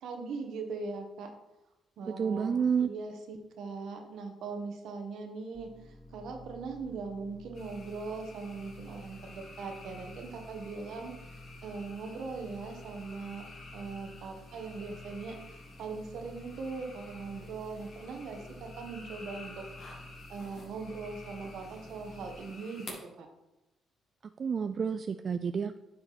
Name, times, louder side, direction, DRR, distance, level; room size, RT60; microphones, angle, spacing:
voice 1, 0.0-1.3 2.0-13.5 13.7-19.7 20.3-23.3, right 4 dB, 75° right, 4 dB, 1.4 m, -40 dB
voice 2, 2.2-2.9 24.4-25.8, right 6 dB, 45° right, 10 dB, 0.3 m, -29 dB
sound 1, 5.5-22.3, left 1 dB, 15° left, 0.8 m, -51 dB
sound 2, 7.5-22.9, left 2 dB, 50° left, 2.9 m, -51 dB
9.6 x 5.1 x 4.2 m, 0.96 s
cardioid pair, 90°, 0 cm